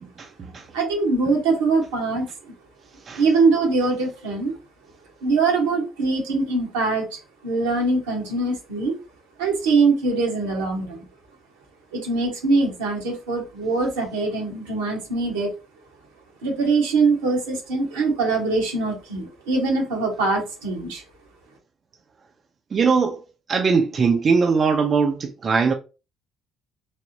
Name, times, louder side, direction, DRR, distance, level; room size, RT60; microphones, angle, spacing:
voice 1, 0.0-0.6 3.1-3.2 22.7-23.2 23.5-25.7, right 5 dB, 45° right, 0.5 m, -21 dB
voice 2, 0.7-2.5 3.2-4.5 5.2-8.9 9.4-11.0 11.9-15.5 16.4-21.0, right 3 dB, 85° right, 1.0 m, -22 dB
3.3 x 2.0 x 2.6 m
hypercardioid pair, 55°, 0 cm